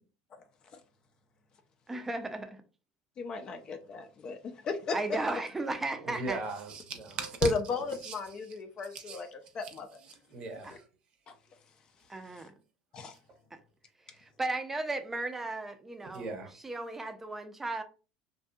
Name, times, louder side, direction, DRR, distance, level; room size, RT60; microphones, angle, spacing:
voice 1, 1.9-2.6 4.9-6.4 10.6-10.7 12.1-12.5 13.5-13.6 14.1-16.3 16.6-17.8, right 2 dB, 15° right, 0.5 m, -35 dB
voice 2, 3.2-5.0 7.4-9.3 9.5-9.9 10.7-10.8 11.3-11.4 12.9-13.1, left 3 dB, 40° left, 0.4 m, -34 dB
voice 3, 5.9-8.4 8.9-9.2 9.6-9.7 10.1-10.8 13.3-13.4 16.0-16.6, right 3 dB, 45° right, 0.7 m, -38 dB
2.6 x 2.6 x 2.2 m
supercardioid pair, 110°, 2 cm